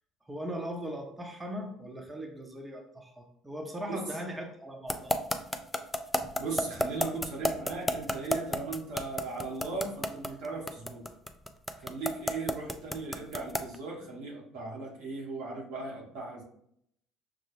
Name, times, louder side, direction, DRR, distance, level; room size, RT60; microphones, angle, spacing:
voice 1, 0.3-5.1, equal, 20° right, 2 dB, 1.0 m, -39 dB
sound 1, 4.9-13.8, left 1 dB, 10° left, 0.5 m, -30 dB
voice 2, 6.4-11.1 11.8-16.4, right 3 dB, 75° right, -3 dB, 1.2 m, -37 dB
5.8 x 2.3 x 3.2 m, 0.71 s
hypercardioid pair, 60°, 0 cm